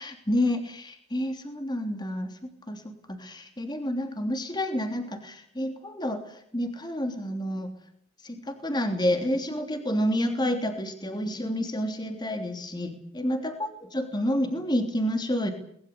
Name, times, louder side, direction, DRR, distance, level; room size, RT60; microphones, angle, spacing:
voice 1, 0.0-2.4 2.7-7.7 8.2-13.6 13.9-15.5, equal, 20° left, 6 dB, 3.1 m, -29 dB
21.5 x 21.0 x 8.3 m, 0.65 s
head